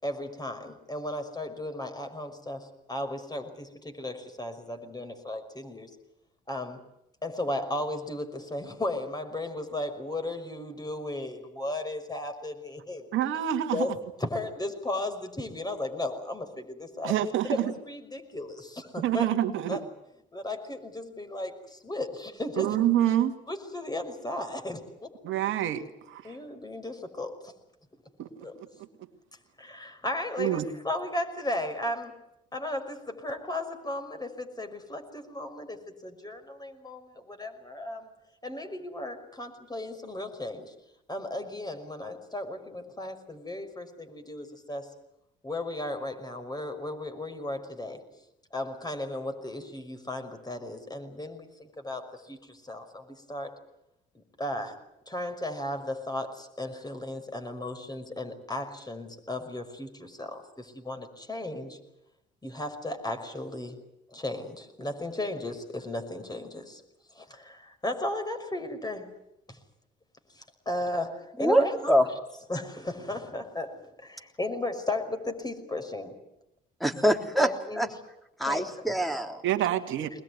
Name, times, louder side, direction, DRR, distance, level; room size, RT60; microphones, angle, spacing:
voice 1, 0.0-5.9 6.5-6.8 7.2-13.1 13.7-13.9 14.2-17.1 17.4-19.3 19.7-19.8 20.3-22.7 23.5-25.1 26.2-27.5 28.4-28.5 29.6-32.1 32.5-38.1 38.4-40.7 41.1-44.9 45.4-48.0 48.5-53.5 54.1-54.7 55.1-61.8 62.4-63.8 64.1-66.8 67.1-69.1 69.5-69.6 70.3-71.9 72.5-73.7 74.0-76.1 77.4-77.9 78.5-79.0, left 1 dB, 20° left, 6 dB, 5.7 m, -35 dB
voice 2, 13.1-13.9 17.0-17.7 19.0-19.8 22.6-23.3 25.2-26.4 28.2-28.9 30.4-30.7 79.4-80.1, right 12 dB, 75° right, 7 dB, 2.3 m, -27 dB
voice 3, 71.4-72.0 76.8-77.5 77.8-77.9 78.4-79.4, equal, ahead, 3 dB, 3.6 m, -24 dB
22.0 x 21.0 x 9.7 m, 0.85 s
supercardioid pair, 70°, 21 cm